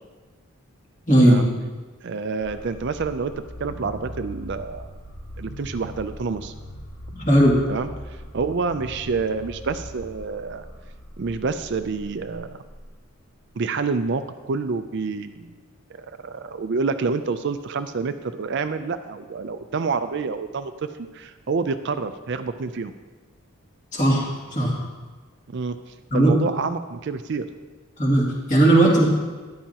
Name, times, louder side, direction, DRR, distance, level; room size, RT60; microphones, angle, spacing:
voice 1, 1.1-1.4 7.3-7.6 23.9-24.7 26.1-26.5 28.0-29.0, right 1 dB, 35° left, -3 dB, 2.4 m, -17 dB
voice 2, 2.0-3.3 3.6-4.9 5.4-6.5 7.7-10.6 11.2-12.6 13.6-15.5 16.0-20.7 21.0-22.9 25.5-25.8 26.1-27.5, right 4 dB, 50° right, 10 dB, 0.4 m, -28 dB
sound 1, 2.4-13.3, equal, 85° left, 3.6 m, -40 dB
13.5 x 10.5 x 2.9 m, 1.4 s
head